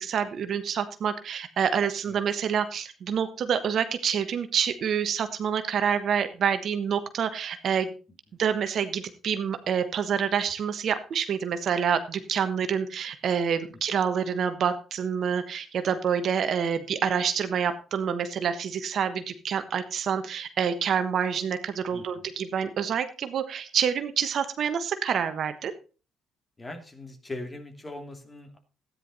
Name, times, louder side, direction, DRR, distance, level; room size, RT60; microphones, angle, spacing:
voice 1, 0.0-8.0 8.4-25.7, right 7 dB, 60° right, 10 dB, 1.2 m, -27 dB
voice 2, 21.9-22.3 26.6-28.6, left 2 dB, 25° left, 6 dB, 2.9 m, -40 dB
13.5 x 9.9 x 4.1 m, 0.34 s
hypercardioid pair, 55°, 0 cm